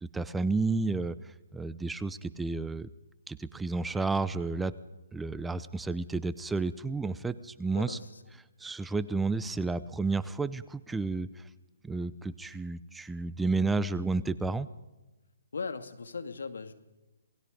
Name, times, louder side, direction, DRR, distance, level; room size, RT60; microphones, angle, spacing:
voice 1, 0.1-1.2 1.5-2.9 3.3-4.7 5.1-8.0 8.6-11.4 11.8-14.7, right 3 dB, 5° right, 15 dB, 0.6 m, -31 dB
voice 2, 7.7-8.2 15.5-16.7, left 4 dB, 80° left, 9 dB, 2.3 m, -38 dB
28.0 x 20.0 x 5.2 m, 1.1 s
hypercardioid pair, 145°, 0 cm